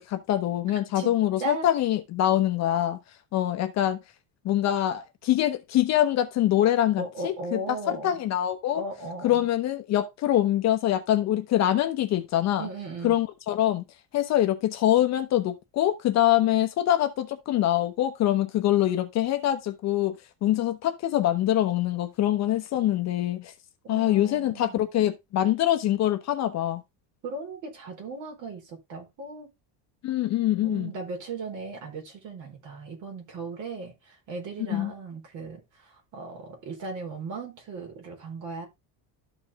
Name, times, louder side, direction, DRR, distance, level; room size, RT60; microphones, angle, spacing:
voice 1, 0.0-3.0 3.3-4.0 4.4-7.6 7.9-8.8 9.2-12.7 13.0-13.8 14.1-23.5 23.9-26.8 30.0-30.9 34.7-34.9, left 12 dB, 40° left, 0.9 m, -24 dB
voice 2, 7.0-8.2 8.7-9.5 12.6-13.2 23.8-24.9 27.2-29.5 30.6-38.7, right 3 dB, 45° right, 4.4 m, -37 dB
12.5 x 5.0 x 3.6 m
cardioid pair, 175°, 42 cm